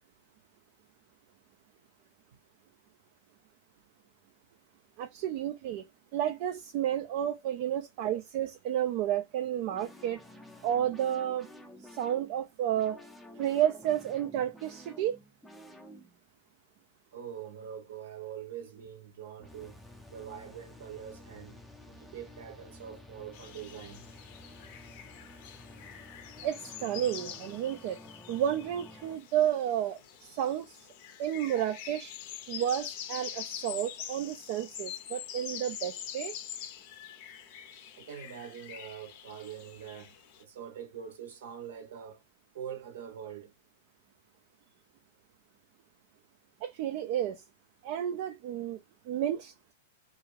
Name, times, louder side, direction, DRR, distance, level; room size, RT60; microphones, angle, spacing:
voice 1, 5.0-5.9 6.1-10.2 10.6-11.5 11.8-13.0 13.4-15.2 26.4-28.0 28.3-30.8 31.2-32.1 32.5-36.3 46.6-47.4 47.8-48.8 49.1-49.7, right 10 dB, 50° right, 0.3 m, -31 dB
sound 1, 9.7-16.2 19.4-29.2, left 1 dB, ahead, 0.5 m, -52 dB
voice 2, 17.1-19.8 20.1-21.6 21.9-24.1 38.0-42.2 42.5-43.5, right 8 dB, 70° right, 0.9 m, -44 dB
sound 2, 23.3-40.4, left 9 dB, 50° left, 0.5 m, -45 dB
2.4 x 2.3 x 3.1 m
hypercardioid pair, 110°, 0 cm